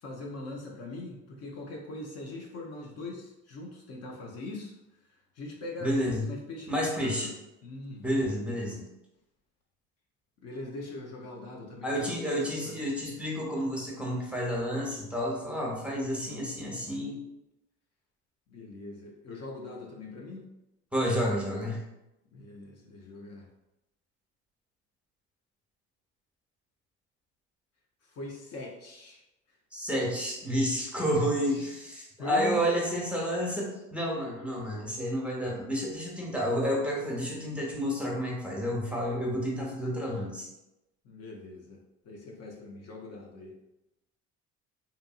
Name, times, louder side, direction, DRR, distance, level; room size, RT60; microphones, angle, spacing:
voice 1, 0.0-4.8 5.0-6.0 6.3-7.3 7.6-8.2 10.4-12.9 18.5-20.5 22.3-23.5 28.0-29.2 29.5-29.6 31.5-31.7 32.2-32.7 41.0-43.6, left 2 dB, 50° left, -1 dB, 0.7 m, -42 dB
voice 2, 5.8-6.3 6.7-7.3 8.0-8.8 11.8-17.2 20.9-21.8 29.7-40.5, equal, 5° right, -3 dB, 0.8 m, -30 dB
2.9 x 2.5 x 2.4 m, 0.90 s
supercardioid pair, 80°, 33 cm